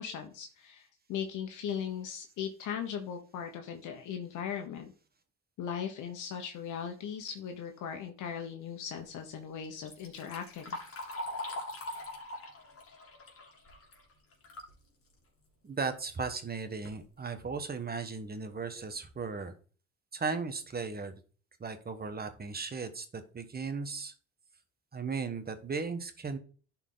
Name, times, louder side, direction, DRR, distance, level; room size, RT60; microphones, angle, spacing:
voice 1, 0.0-4.9 5.6-10.8, left 8 dB, 80° left, 4 dB, 1.2 m, -38 dB
Liquid, 9.6-14.8 15.2-15.3 16.1-16.2 16.7-17.0 17.6-17.7 18.2-18.3 18.7-19.0, left 1 dB, 50° left, 3.0 m, -42 dB
voice 2, 15.6-19.5 20.1-21.1 21.6-24.1 24.9-26.4, right 4 dB, 30° right, 8 dB, 1.3 m, -36 dB
11.0 x 4.5 x 3.9 m, 0.39 s
cardioid pair, 90°, 30 cm